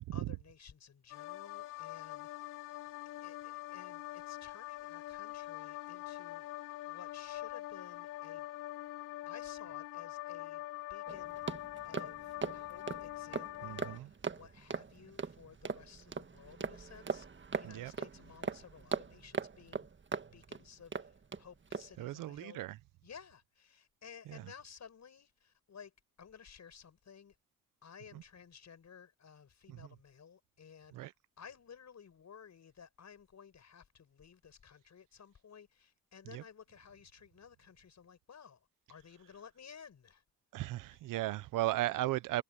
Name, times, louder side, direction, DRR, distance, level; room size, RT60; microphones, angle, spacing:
voice 1, 0.1-2.6 3.2-6.5 6.9-8.5 9.3-10.6 10.9-11.4 11.8-17.3 17.5-19.9 20.3-22.7 23.0-27.4 27.8-31.1 31.4-40.2, left 7 dB, 60° left, 7.2 m, -55 dB
sound 1, 1.1-14.0, left 16 dB, 90° left, 2.3 m, -44 dB
sound 2, 11.1-21.4 21.7-22.0, right 5 dB, 35° right, 1.7 m, -40 dB
voice 2, 13.6-14.1 17.6-17.9 22.0-22.8 24.3-24.4 29.7-29.8 30.9-31.1 36.3-36.4 40.5-42.4, right 16 dB, 90° right, 0.7 m, -36 dB
supercardioid pair, 60°, 32 cm